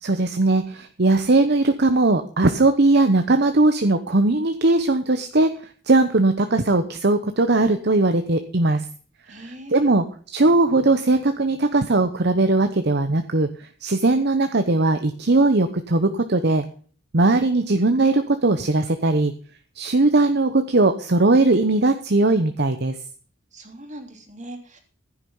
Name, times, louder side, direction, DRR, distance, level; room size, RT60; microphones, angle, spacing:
voice 1, 0.0-5.5 5.9-8.8 9.4-16.6 17.1-19.3 19.8-23.0, right 2 dB, 55° right, 8 dB, 1.0 m, -19 dB
voice 2, 9.3-9.9 23.5-24.8, right 1 dB, 35° right, 3 dB, 3.1 m, -40 dB
15.0 x 9.8 x 5.5 m, 0.44 s
head